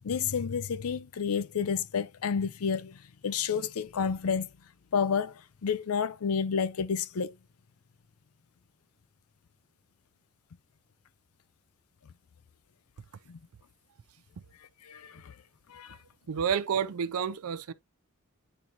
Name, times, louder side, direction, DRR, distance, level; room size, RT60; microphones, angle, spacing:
voice 1, 0.0-4.5 4.9-7.3 13.3-13.4 14.8-15.3 15.7-16.0, left 6 dB, 80° left, 0.5 m, -30 dB
voice 2, 16.3-17.7, right 7 dB, 75° right, 0.5 m, -29 dB
8.8 x 3.9 x 2.8 m
head